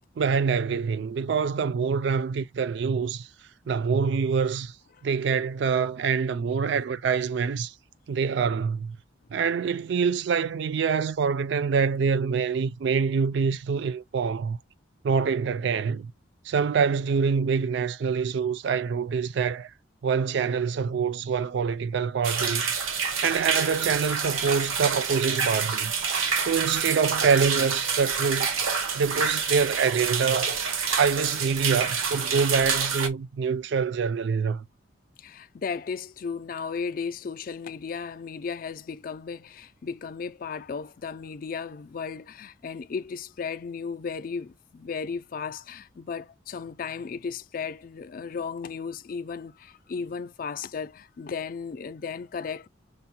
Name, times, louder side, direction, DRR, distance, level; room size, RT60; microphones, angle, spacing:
voice 1, 0.2-3.3 3.7-4.7 5.0-7.7 8.1-9.0 9.3-14.6 15.0-16.1 16.5-19.7 20.0-22.6 23.2-25.9 26.4-28.5 28.9-30.5 31.0-34.6, right 6 dB, 60° right, 0.3 m, -25 dB
sound 1, 22.2-33.1, right 6 dB, 85° right, 0.8 m, -27 dB
voice 2, 35.2-52.7, left 5 dB, 45° left, 0.3 m, -35 dB
6.5 x 2.2 x 2.8 m
head